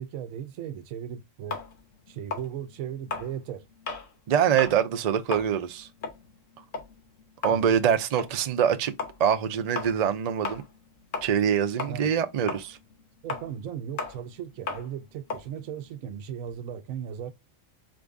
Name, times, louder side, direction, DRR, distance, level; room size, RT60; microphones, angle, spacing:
voice 1, 0.0-1.6 2.1-3.6 7.5-7.8 11.9-12.1 13.2-17.3, right 9 dB, 85° right, 1.0 m, -37 dB
sound 1, 1.5-4.1 4.5-4.8 5.1-11.5 11.8-16.6, left 4 dB, 70° left, 1.3 m, -36 dB
voice 2, 4.3-5.9 7.4-8.9 9.2-10.6 11.2-12.8, right 8 dB, 65° right, 0.4 m, -24 dB
4.7 x 2.6 x 3.4 m
omnidirectional pair, 1.4 m